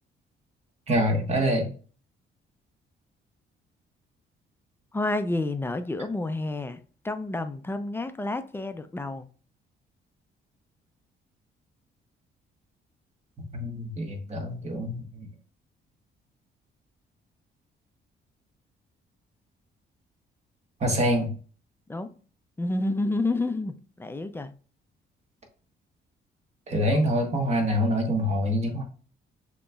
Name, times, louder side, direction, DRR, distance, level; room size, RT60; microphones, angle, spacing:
voice 1, 0.9-1.7 13.4-15.3 20.8-21.4 26.7-28.8, equal, 35° right, 1 dB, 1.3 m, -25 dB
voice 2, 4.9-6.8 7.0-9.3 21.9-22.1 22.6-24.5, left 2 dB, 10° left, 9 dB, 0.4 m, -29 dB
6.3 x 2.9 x 2.3 m, 0.40 s
cardioid pair, 90°, 20 cm